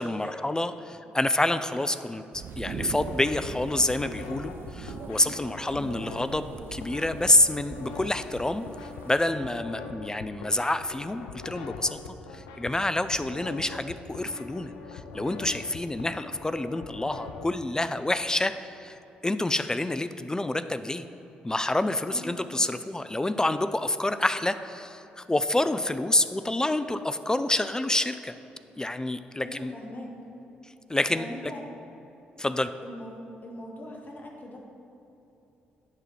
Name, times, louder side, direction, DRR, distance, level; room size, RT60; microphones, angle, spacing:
voice 1, 0.0-12.0 12.3-18.9 19.2-21.0 21.4-28.3 28.8-29.7 30.9-31.3 32.4-32.7, left 1 dB, 15° left, 11 dB, 0.4 m, -28 dB
sound 1, 2.3-9.1, right 5 dB, 60° right, 0.5 m, -41 dB
sound 2, 2.8-17.4, left 4 dB, 80° left, 0.5 m, -43 dB
voice 2, 5.7-6.1 22.1-22.4 29.4-30.1 31.1-31.6 32.8-34.6, equal, 40° left, -1 dB, 1.7 m, -41 dB
10.5 x 3.6 x 6.0 m, 2.9 s
hypercardioid pair, 45°, 4 cm